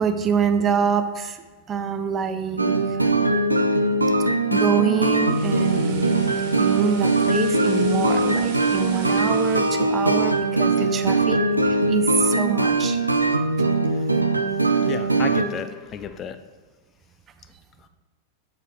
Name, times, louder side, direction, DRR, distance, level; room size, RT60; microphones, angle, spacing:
voice 1, 0.0-1.4 1.7-2.7 4.5-11.4 11.9-13.0, right 6 dB, 25° right, 8 dB, 0.7 m, -25 dB
sound 1, 2.6-15.4, right 2 dB, 85° right, 0.6 m, -21 dB
sound 2, 4.9-11.0 11.4-11.6, right 5 dB, 45° right, 1.4 m, -40 dB
voice 2, 14.9-16.4, left 7 dB, 30° left, 10 dB, 0.4 m, -33 dB
7.7 x 6.5 x 4.5 m, 1.3 s
figure-of-eight pair, 90°, 0 cm